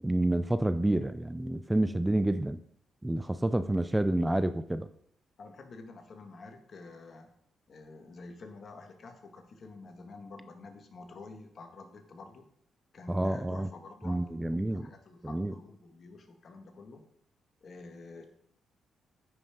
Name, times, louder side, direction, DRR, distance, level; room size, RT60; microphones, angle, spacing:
voice 1, 0.0-2.6 3.0-4.9 13.1-13.7 14.0-14.9 15.2-15.5, right 1 dB, 15° right, 12 dB, 0.5 m, -29 dB
voice 2, 5.4-7.3 7.7-12.5 12.9-14.4 14.7-17.0 17.6-18.2, left 3 dB, 55° left, 5 dB, 1.7 m, -48 dB
9.3 x 5.7 x 5.1 m, 0.68 s
supercardioid pair, 60°, 0 cm